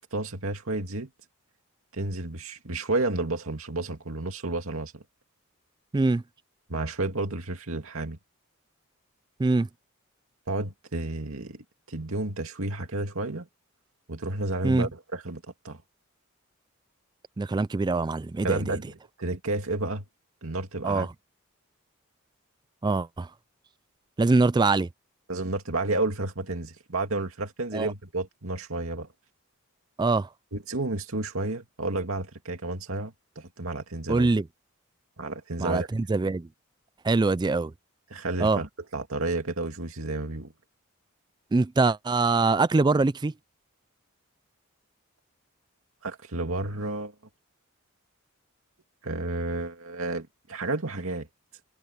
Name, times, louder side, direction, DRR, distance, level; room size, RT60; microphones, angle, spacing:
voice 1, 0.1-1.1 1.9-5.0 6.7-8.2 10.5-13.5 14.1-15.8 18.4-20.1 20.4-21.1 25.3-29.1 30.5-34.3 35.2-35.9 38.1-40.5 46.0-47.1 49.0-51.3, right 2 dB, 75° right, 2.4 m, -31 dB
voice 2, 17.4-18.6 20.8-21.1 22.8-23.3 24.2-24.9 27.7-27.9 30.0-30.3 34.1-34.4 35.6-36.5 37.0-37.7 38.4-38.6 41.5-43.3, right 3 dB, 20° right, 0.3 m, -23 dB
head